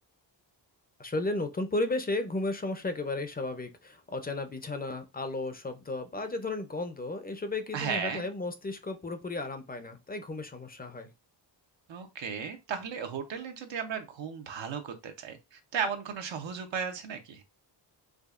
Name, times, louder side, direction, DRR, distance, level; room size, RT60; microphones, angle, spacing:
voice 1, 1.0-11.1, left 2 dB, 20° left, 0.5 m, -34 dB
voice 2, 7.7-8.3 11.9-17.4, right 6 dB, 75° right, 0.9 m, -35 dB
5.0 x 2.3 x 2.4 m
cardioid pair, 100°, 45 cm